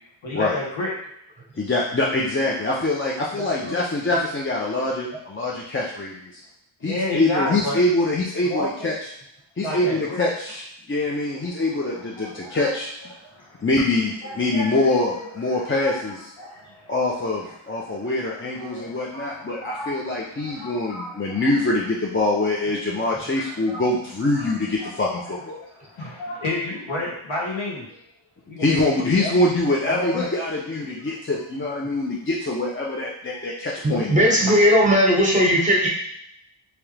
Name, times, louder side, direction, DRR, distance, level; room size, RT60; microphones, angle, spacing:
voice 1, 0.2-0.9 3.3-3.8 6.8-7.8 8.4-8.9 9.6-10.2 11.7-12.7 13.2-13.7 14.2-16.9 17.4-17.5 17.8-21.5 22.2-22.3 23.0-23.8 24.3-24.5 24.8-24.9 25.6-28.0 28.5-29.3 29.8-30.3 34.5-34.6, left 1 dB, 75° left, -4 dB, 1.4 m, -32 dB
voice 2, 1.6-6.4 6.8-8.9 9.6-12.9 13.6-16.2 16.9-25.6 28.6-34.2, left 2 dB, 25° left, -3 dB, 0.6 m, -24 dB
voice 3, 33.8-35.9, equal, 15° right, -3 dB, 1.1 m, -17 dB
3.5 x 3.0 x 3.3 m, 0.75 s
cardioid pair, 75°, 48 cm